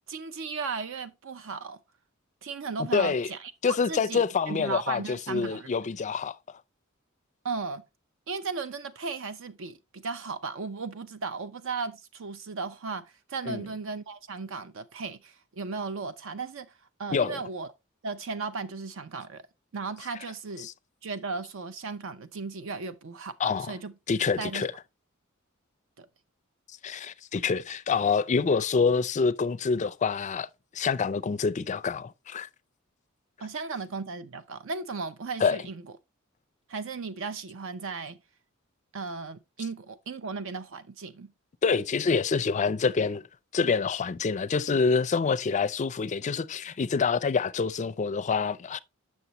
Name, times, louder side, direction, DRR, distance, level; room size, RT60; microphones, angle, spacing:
voice 1, 0.1-1.8 2.4-5.7 7.4-7.8 8.3-16.7 17.0-17.7 18.0-19.4 19.7-20.7 21.0-23.9 24.4-24.7 26.0-26.1 33.4-35.8 36.7-38.2 38.9-41.3, right 4 dB, 65° right, 0.6 m, -36 dB
voice 2, 2.9-3.3 3.6-6.4 13.5-13.6 17.1-17.4 20.6-20.7 23.4-23.8 24.1-24.7 26.8-30.5 30.7-32.5 35.4-35.6 41.6-43.2 43.5-48.8, left 5 dB, 35° left, 0.4 m, -26 dB
8.0 x 6.3 x 2.9 m
head